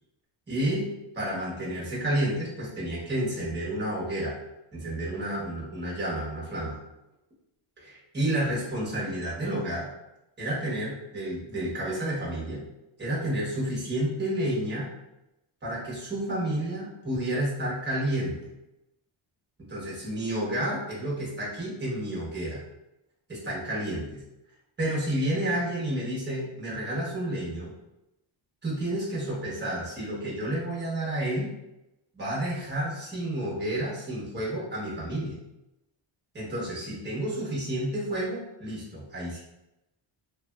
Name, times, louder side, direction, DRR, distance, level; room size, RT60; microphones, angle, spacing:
voice 1, 0.5-0.9 1.1-4.4 4.7-6.8 7.8-9.9 10.4-12.6 13.0-14.9 15.6-18.4 19.6-22.6 23.3-24.2 24.8-27.7 28.6-31.5 32.1-35.4 36.3-39.4, right 1 dB, 20° right, -5 dB, 1.1 m, -30 dB
3.1 x 2.5 x 2.2 m, 0.92 s
wide cardioid pair, 125°, 50 cm